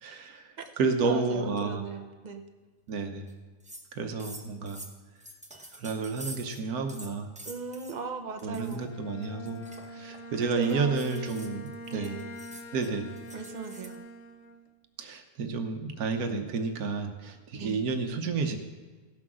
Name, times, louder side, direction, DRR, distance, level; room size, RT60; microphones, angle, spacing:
voice 1, 0.0-1.8 2.9-3.3 3.9-4.8 5.7-7.3 8.4-9.6 9.9-12.1 12.7-13.1 15.0-18.6, right 4 dB, 85° right, 6 dB, 1.4 m, -31 dB
voice 2, 1.0-2.4 7.4-8.9 10.6-11.0 11.9-12.3 13.3-14.0 17.6-17.8, right 4 dB, 35° right, 6 dB, 0.8 m, -37 dB
sound 1, 3.3-3.4 3.6-3.9 4.2-6.6 6.9-8.0 8.4-8.8 9.2-14.0, right 1 dB, 5° right, 0.7 m, -47 dB
Bowed string instrument, 8.7-14.7, right 1 dB, 65° left, 1.0 m, -44 dB
16.0 x 6.0 x 6.2 m, 1.3 s
omnidirectional pair, 1.5 m